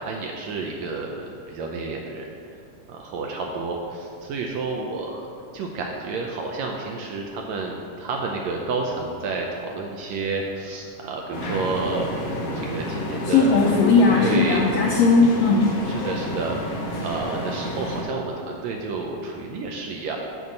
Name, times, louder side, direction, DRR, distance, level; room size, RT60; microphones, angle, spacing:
voice 1, 0.0-2.2 2.9-5.2 5.5-13.6 14.1-14.7 15.9-16.6 17.0-20.2, right 3 dB, 75° right, 1 dB, 1.7 m, -30 dB
sound 1, 11.3-18.0, left 1 dB, 60° left, 1.8 m, -29 dB
voice 2, 13.2-15.7, left 4 dB, 80° left, -1 dB, 1.5 m, -18 dB
8.5 x 4.6 x 6.6 m, 2.6 s
omnidirectional pair, 3.7 m